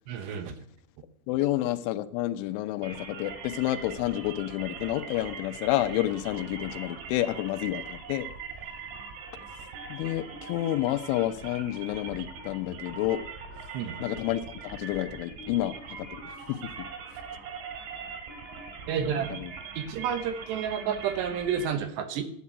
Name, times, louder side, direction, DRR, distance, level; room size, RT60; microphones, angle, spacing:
voice 1, 0.1-0.5 13.7-14.0 18.9-19.4 19.8-22.2, right 7 dB, 70° right, 7 dB, 3.1 m, -30 dB
voice 2, 1.3-8.3 9.9-13.2 14.0-16.7 19.3-19.5, left 14 dB, 85° left, 11 dB, 3.2 m, -29 dB
sound 1, 2.8-21.7, right 5 dB, 90° right, 4.6 m, -41 dB
12.0 x 8.5 x 8.3 m, 0.63 s
omnidirectional pair, 5.4 m